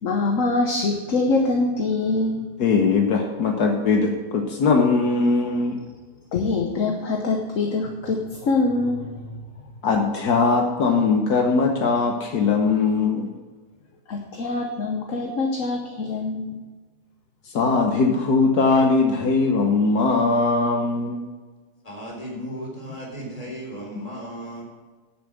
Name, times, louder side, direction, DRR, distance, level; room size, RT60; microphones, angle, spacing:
voice 1, 0.0-2.5 6.3-9.1 14.1-16.6, left 3 dB, 55° left, 2 dB, 1.4 m, -24 dB
voice 2, 2.6-5.8 9.8-13.3 17.4-21.2 22.4-22.5, left 4 dB, 75° left, 3 dB, 1.6 m, -20 dB
voice 3, 21.8-24.6, right 1 dB, 20° left, -2 dB, 3.6 m, -36 dB
10.5 x 7.0 x 6.6 m, 1.3 s
omnidirectional pair, 1.7 m